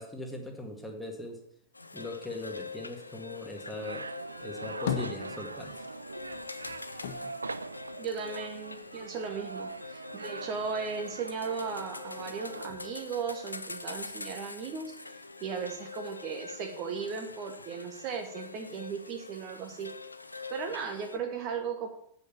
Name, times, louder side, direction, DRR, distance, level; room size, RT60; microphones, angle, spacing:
voice 1, 0.0-1.4 1.9-4.1 4.4-5.7, left 2 dB, 5° left, 1 dB, 2.0 m, -40 dB
sound 1, 1.7-21.2, left 4 dB, 80° left, 0.7 m, -44 dB
sound 2, 3.8-12.7, right 3 dB, 80° right, 0.4 m, -42 dB
sound 3, 4.5-5.9 6.2-8.6 9.0-9.9, left 8 dB, 55° left, 1.3 m, -38 dB
voice 2, 8.0-14.9 15.4-19.9 20.5-21.9, right 6 dB, 40° right, 5 dB, 1.2 m, -36 dB
9.2 x 5.3 x 7.0 m, 0.70 s
figure-of-eight pair, 90°, 0 cm